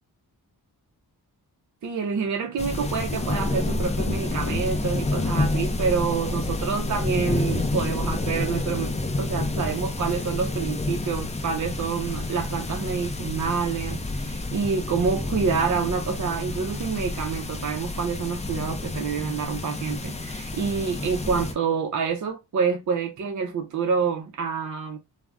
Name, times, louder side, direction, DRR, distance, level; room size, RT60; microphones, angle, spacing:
voice 1, 1.8-25.0, right 5 dB, 50° right, 0.5 m, -27 dB
sound 1, 2.6-21.5, left 2 dB, 20° left, 0.4 m, -29 dB
2.4 x 2.0 x 3.3 m
wide cardioid pair, 110°, 39 cm